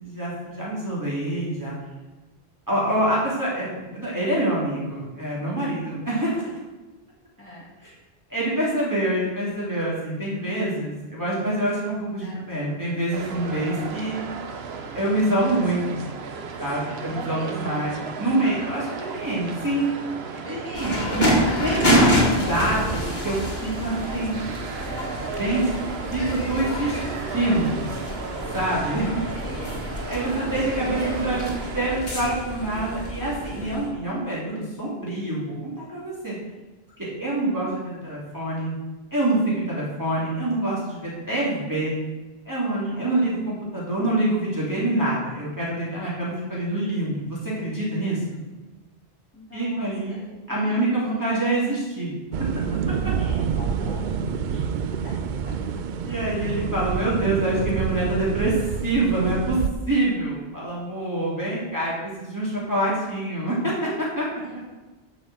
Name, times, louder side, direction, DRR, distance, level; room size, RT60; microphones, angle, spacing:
voice 1, 0.0-1.7 2.7-6.4 7.8-7.9 8.3-14.2 14.9-16.0 16.6-18.9 19.1-19.8 20.5-21.2 21.6-24.4 25.4-27.9 28.5-29.1 30.1-36.4 37.0-38.7 39.1-42.0 42.4-48.4 49.5-52.1 52.5-52.6 53.0-53.1 56.0-58.5 58.8-59.6 59.9-64.3, right 1 dB, 20° right, -8 dB, 2.8 m, -26 dB
voice 2, 6.1-6.5 7.4-7.7 12.2-12.5 17.0-17.5 20.3-21.8 24.8-25.3 28.7-29.2 29.4-30.0 30.3-31.1 42.7-43.2 49.3-50.2 50.5-51.3 53.1-54.2 54.5-54.7 55.0-55.1 55.4-55.5 64.4-64.5, equal, 10° left, -7 dB, 3.0 m, -41 dB
sound 1, 13.1-32.0, right 5 dB, 75° right, 1.1 m, -35 dB
sound 2, 20.7-33.9, equal, 45° left, 2.0 m, -27 dB
sound 3, 52.3-59.7, right 7 dB, 55° right, 0.6 m, -27 dB
8.5 x 5.3 x 7.6 m, 1.2 s
omnidirectional pair, 1.1 m